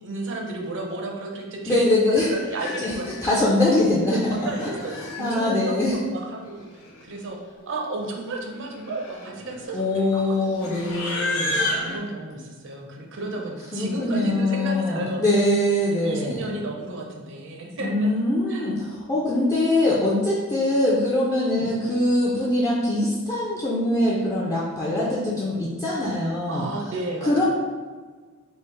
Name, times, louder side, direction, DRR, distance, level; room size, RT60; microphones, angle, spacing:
voice 1, 0.0-3.4 4.0-6.7 7.0-7.4 7.7-10.8 11.8-15.2 16.0-18.1 18.5-18.7 21.5-21.7 26.5-27.4, right 2 dB, 60° right, 0 dB, 0.5 m, -33 dB
voice 2, 1.7-2.3 2.6-4.2 4.6-4.7 5.0-6.0 9.7-11.6 13.7-16.5 17.8-26.7 27.2-27.4, left 1 dB, 15° left, -7 dB, 0.4 m, -23 dB
Livestock farm animals working animals, 1.8-1.9 2.3-3.3 4.1-5.4 6.5-6.6 6.8-7.2 7.5-7.7 8.4-12.0, left 2 dB, 80° left, 0.7 m, -32 dB
3.4 x 2.4 x 3.1 m, 1.5 s
head